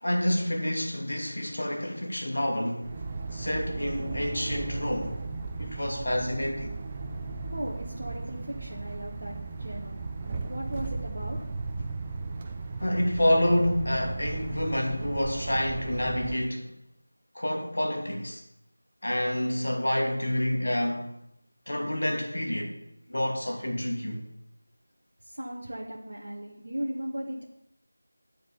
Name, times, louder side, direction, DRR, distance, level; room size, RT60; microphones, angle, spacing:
voice 1, 0.0-2.9 3.3-5.2 5.6-6.7 12.8-16.7 17.3-18.4 19.0-21.1 21.7-22.8 23.1-24.2, left 1 dB, 65° left, 2.0 m, -28 dB
sound 1, 2.8-16.4, right 3 dB, 20° right, 0.5 m, -36 dB
voice 2, 7.5-10.0 10.5-11.4 25.2-27.4, right 1 dB, 55° right, 1.4 m, -37 dB
9.7 x 4.8 x 6.9 m
figure-of-eight pair, 170°, 0 cm